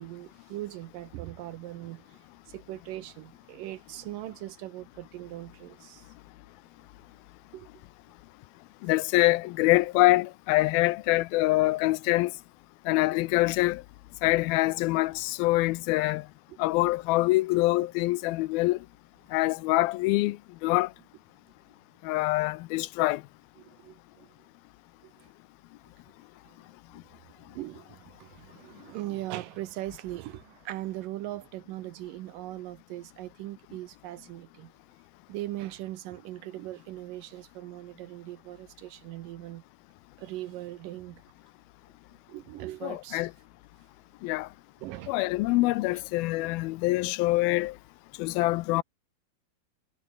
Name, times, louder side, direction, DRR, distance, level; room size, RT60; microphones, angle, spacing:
voice 1, 0.0-6.1 7.5-7.7 16.5-16.6 23.6-24.3 25.0-25.1 26.5-26.6 26.9-27.0 27.5-34.7 35.3-39.6 40.2-41.2 42.3-43.3 44.8-45.1 45.5-45.6 45.9-46.0, right 15 dB, 75° right, 2.2 m, -40 dB
voice 2, 8.8-12.3 12.9-13.8 14.2-16.2 16.6-18.8 19.3-20.4 20.6-20.9 22.1-23.2 42.8-43.3 44.2-44.5 45.1-47.7 48.2-48.8, left 19 dB, 85° left, 2.4 m, -25 dB
omnidirectional pair, 4.4 m